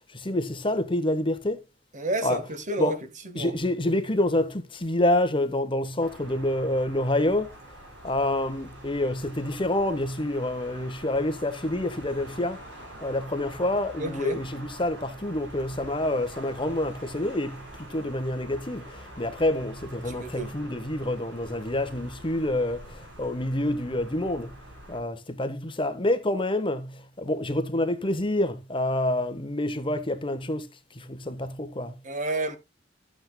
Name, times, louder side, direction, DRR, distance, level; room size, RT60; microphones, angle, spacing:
voice 1, 0.1-1.6 2.2-2.4 2.8-2.9 3.3-7.5 8.0-12.6 13.0-24.5 24.9-30.7 30.9-31.9, left 1 dB, 30° left, 1.2 m, -27 dB
voice 2, 1.9-3.0 3.2-3.6 14.0-14.4 20.0-20.5 32.0-32.6, right 2 dB, 45° right, 1.6 m, -30 dB
sound 1, 6.0-25.0, right 1 dB, 70° right, 6.1 m, -45 dB
13.5 x 8.8 x 2.2 m
head